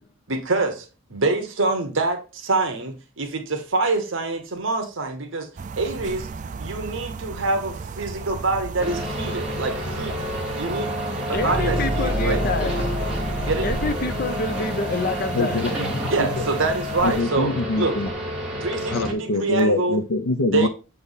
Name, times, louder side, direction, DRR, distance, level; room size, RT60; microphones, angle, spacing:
voice 1, 0.3-5.5 5.7-6.3 6.6-10.2 10.5-10.9 11.3-12.4 12.8-12.9 13.4-13.7 16.1-18.0 18.6-20.0 20.5-20.7, right 3 dB, 60° right, 1.0 m, -25 dB
sound 1, 5.6-17.2, right 4 dB, 35° right, 0.3 m, -36 dB
sound 2, 8.8-19.1, equal, 5° right, 1.4 m, -30 dB
sound 3, 11.3-15.1, right 1 dB, 65° left, 2.3 m, -28 dB
voice 2, 11.3-12.9 13.6-15.6, left 2 dB, 40° left, 0.6 m, -27 dB
voice 3, 15.3-16.4 17.0-18.1 18.9-20.7, left 2 dB, 85° left, 0.8 m, -24 dB
6.9 x 3.4 x 4.0 m
head